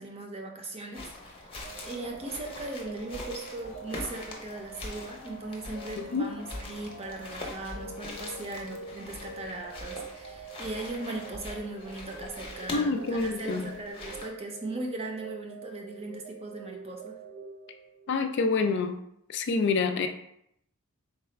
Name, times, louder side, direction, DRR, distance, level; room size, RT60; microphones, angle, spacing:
voice 1, 0.0-1.5 1.8-17.2, right 2 dB, 30° right, 2 dB, 0.6 m, -38 dB
sound 1, 0.9-14.3, left 2 dB, 25° left, 0.7 m, -43 dB
sound 2, 1.6-18.2, right 3 dB, 80° right, 1.0 m, -45 dB
voice 2, 6.0-6.3 12.7-13.7 18.1-19.0 19.3-20.1, left 4 dB, 55° left, 7 dB, 0.3 m, -27 dB
3.8 x 2.4 x 4.3 m, 0.74 s
head